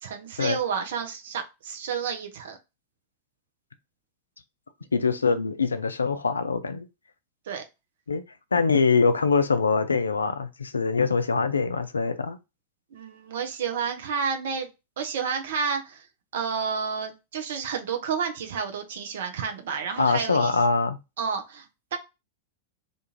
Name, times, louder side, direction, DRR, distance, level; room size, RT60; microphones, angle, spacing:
voice 1, 0.0-2.6 7.5-7.6 12.9-14.7 15.0-16.1 16.3-20.6 21.2-21.7 21.9-22.0, right 6 dB, 55° right, 0.5 m, -30 dB
voice 2, 4.9-6.9 8.1-8.2 8.5-12.4 20.0-21.0, left 4 dB, 75° left, 0.3 m, -23 dB
2.5 x 2.4 x 2.9 m
figure-of-eight pair, 95°, 0 cm